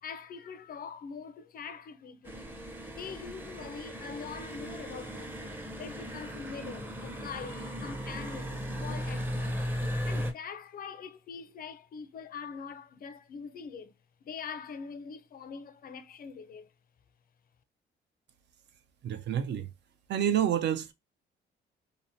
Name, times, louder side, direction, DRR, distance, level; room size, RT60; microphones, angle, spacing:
voice 1, 0.0-2.5 2.9-9.6 10.0-13.9 14.2-16.7, left 6 dB, 50° left, 0.4 m, -43 dB
sound 1, 2.2-10.3, equal, 10° right, 0.5 m, -37 dB
voice 2, 19.0-19.7 20.1-20.9, right 9 dB, 60° right, 0.4 m, -28 dB
2.8 x 2.0 x 2.6 m
cardioid pair, 90°, 20 cm